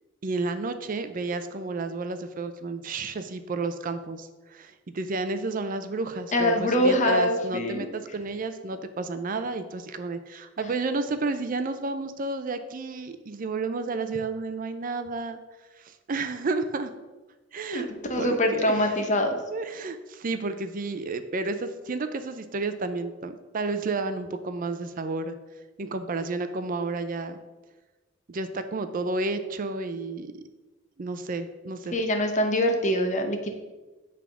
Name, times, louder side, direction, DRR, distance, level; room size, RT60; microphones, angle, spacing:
voice 1, 0.2-15.4 15.8-16.9 17.5-17.9 18.1-18.9 19.5-25.4 25.8-27.4 28.3-30.4 31.0-31.9, right 3 dB, 45° right, 9 dB, 0.5 m, -31 dB
voice 2, 6.3-7.9 17.7-17.8 18.1-19.4 31.9-33.5, equal, 40° left, 4 dB, 0.9 m, -24 dB
8.2 x 3.5 x 5.9 m, 1.2 s
head